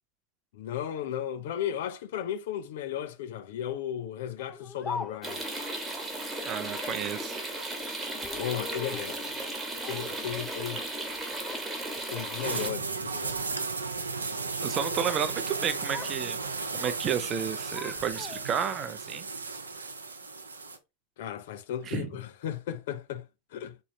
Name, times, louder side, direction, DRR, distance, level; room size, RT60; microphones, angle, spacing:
voice 1, 0.5-5.4 8.3-9.4 9.8-10.8 12.0-13.5 21.2-23.3 23.5-23.8, left 10 dB, 55° left, 0.6 m, -35 dB
Speech, 4.4-5.5 6.6-7.1 8.1-9.1 9.8-10.6 10.9-11.7 12.1-12.4 13.1-13.4 14.6-15.3 15.6-16.2 16.5-17.1 17.4-18.6, left 4 dB, 15° left, 0.3 m, -43 dB
sound 1, 5.2-12.7, right 2 dB, 10° right, 1.3 m, -35 dB
voice 2, 6.4-7.4 14.6-16.4 16.7-19.3 21.9-22.1, right 8 dB, 30° right, 0.6 m, -31 dB
sound 2, 12.4-20.8, right 4 dB, 75° right, 0.7 m, -34 dB
4.2 x 3.6 x 3.1 m
figure-of-eight pair, 90°, 0 cm